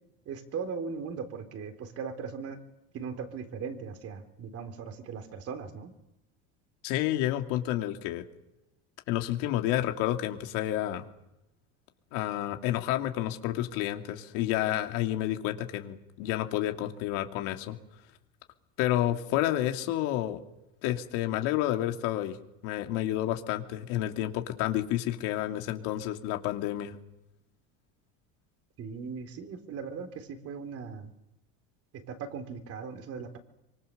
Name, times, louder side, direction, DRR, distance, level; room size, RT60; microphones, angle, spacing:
voice 1, 0.3-2.6 2.9-5.9 28.8-31.1 31.9-33.4, right 5 dB, 45° right, 7 dB, 4.0 m, -38 dB
voice 2, 6.8-8.2 9.1-11.1 12.1-17.8 18.8-20.4 20.8-22.4 22.6-26.9, left 13 dB, 75° left, 5 dB, 2.9 m, -30 dB
25.5 x 24.5 x 6.8 m, 0.91 s
cardioid pair, 135°, 33 cm